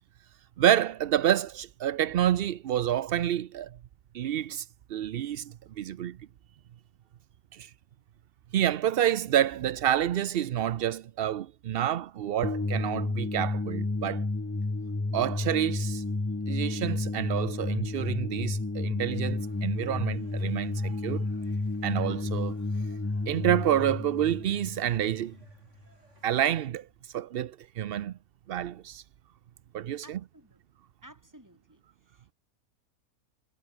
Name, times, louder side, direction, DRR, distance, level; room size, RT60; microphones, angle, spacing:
voice 1, 0.6-3.7 4.1-6.2 7.5-7.7 8.5-14.2 15.1-16.0 16.5-21.3 21.8-22.5 23.3-25.4 26.2-26.9 27.1-28.1 28.5-29.0 29.7-30.2, right 11 dB, 70° right, 0.5 m, -28 dB
sound 1, 12.4-25.5, left 2 dB, 20° left, 0.3 m, -31 dB
sound 2, 19.1-26.7, right 2 dB, 50° right, 5.7 m, -63 dB
voice 2, 30.0-30.6 31.0-31.8 32.1-32.3, right 1 dB, 10° right, 5.0 m, -54 dB
omnidirectional pair, 1.6 m